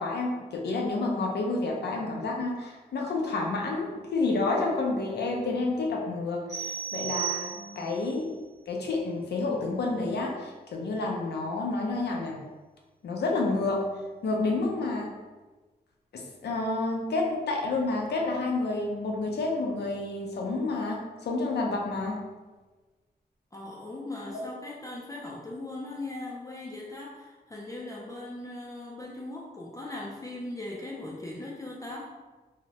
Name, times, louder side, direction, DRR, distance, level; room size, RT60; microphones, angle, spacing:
voice 1, 0.0-8.3 8.7-12.4 13.0-13.9 14.2-15.1 16.1-22.2, left 3 dB, 90° left, 0 dB, 0.5 m, -29 dB
sound 1, 6.5-8.0, right 9 dB, 40° right, 1.2 m, -34 dB
voice 2, 7.5-7.9 23.5-32.1, left 2 dB, 20° left, -4 dB, 0.3 m, -39 dB
2.8 x 2.1 x 2.8 m, 1.2 s
wide cardioid pair, 145°, 17 cm